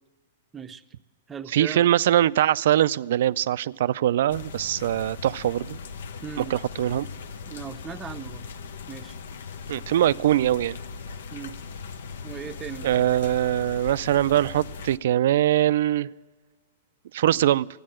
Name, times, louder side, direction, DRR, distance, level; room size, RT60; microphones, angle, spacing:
voice 1, 0.5-1.0 1.3-1.9 6.2-6.6 7.5-8.5 8.9-9.2 11.3-11.6 12.2-13.1 17.3-17.5, right 7 dB, 15° right, 9 dB, 0.6 m, -38 dB
voice 2, 1.5-5.8 6.5-7.1 9.7-10.8 12.8-16.1 17.1-17.7, right 12 dB, 70° right, 19 dB, 0.3 m, -22 dB
sound 1, 4.3-15.0, left 5 dB, 75° left, 0.7 m, -39 dB
14.0 x 9.9 x 7.5 m, 1.5 s
hypercardioid pair, 130°, 0 cm